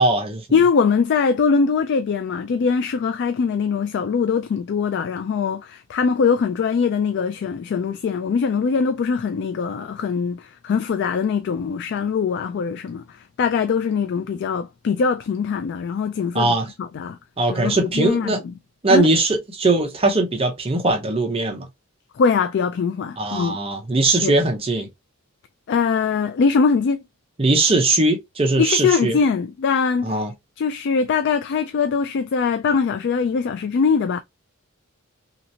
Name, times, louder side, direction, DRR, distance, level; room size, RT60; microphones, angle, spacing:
voice 1, 0.0-0.4 16.3-16.7 17.4-18.4 18.8-21.6 23.2-24.9 27.4-29.2 30.0-30.3, right 2 dB, 25° right, 0.7 m, -20 dB
voice 2, 0.5-17.2 17.5-18.5 18.9-19.1 22.2-23.6 24.2-24.3 25.7-27.0 28.6-30.2 30.6-34.2, left 5 dB, 55° left, 0.3 m, -22 dB
3.1 x 2.8 x 2.7 m
head